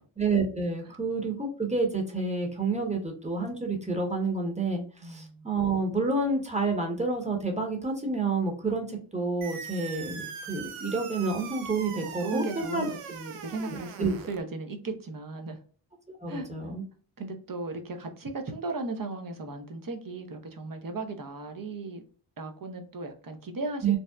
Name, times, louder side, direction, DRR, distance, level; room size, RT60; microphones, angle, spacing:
voice 1, 0.2-12.9 13.7-14.1 16.1-16.8 23.8-24.0, right 3 dB, 15° right, 1.0 m, -29 dB
voice 2, 5.0-5.5 10.1-10.5 12.0-15.6 16.3-16.5 17.2-22.0 22.4-24.0, right 3 dB, 45° right, 0.8 m, -36 dB
sound 1, 9.4-14.4, right 7 dB, 85° right, 0.6 m, -41 dB
2.8 x 2.0 x 2.3 m
cardioid pair, 45°, 50 cm